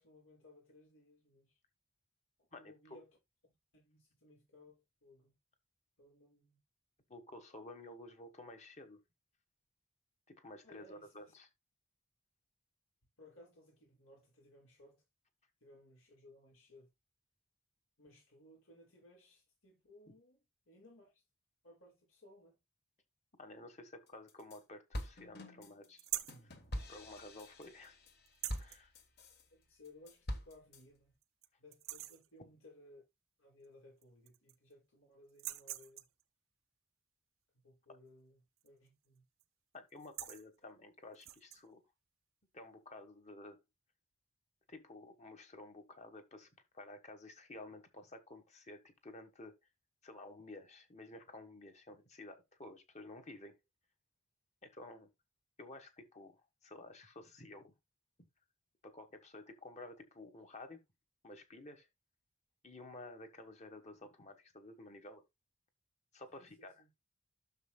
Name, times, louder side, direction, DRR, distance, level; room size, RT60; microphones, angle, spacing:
voice 1, 0.0-1.6 2.4-3.1 3.4-5.4 6.0-6.6 10.6-11.3 13.2-15.0 15.6-16.9 18.0-20.4 20.7-21.2 21.6-22.6 29.5-31.2 31.6-33.0 33.4-36.1 37.6-39.2 66.3-66.9, left 1 dB, 85° left, 6.2 m, -61 dB
voice 2, 2.5-3.0 7.1-9.0 10.3-11.5 23.4-26.1 26.4-26.6 26.9-28.0 28.6-28.9 39.7-41.8 42.5-43.6 44.7-46.5 46.7-49.5 50.0-53.6 54.6-55.1 55.6-57.7 58.8-60.8 61.2-61.9 62.6-65.2 66.1-66.7, left 2 dB, 35° left, 1.4 m, -52 dB
sound 1, 24.1-24.6 24.9-29.4 29.8-30.8, equal, 50° left, 1.3 m, -44 dB
sound 2, 26.0-26.4 28.3-28.8 30.2-30.3 30.7-30.8 31.2-31.5 31.7-32.3 33.6-33.7 34.0-34.7 35.3-36.2 38.6-38.9 39.2-39.4 39.9-40.5 41.1-41.6, right 15 dB, 80° right, 0.7 m, -44 dB
12.5 x 6.5 x 2.3 m
head